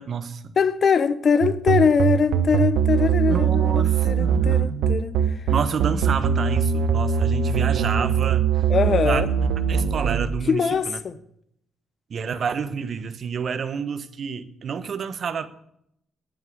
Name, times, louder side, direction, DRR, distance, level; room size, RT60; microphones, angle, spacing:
voice 1, 0.0-0.5 3.3-5.0 5.5-8.6 9.0-11.0 12.1-15.5, right 6 dB, 55° right, 1.3 m, -29 dB
voice 2, 0.6-5.2 8.7-9.3 10.5-11.1, left 6 dB, 45° left, 1.0 m, -22 dB
sound 1, 1.4-10.3, right 8 dB, 85° right, 1.3 m, -21 dB
10.5 x 9.1 x 9.7 m
cardioid pair, 95°, 0 cm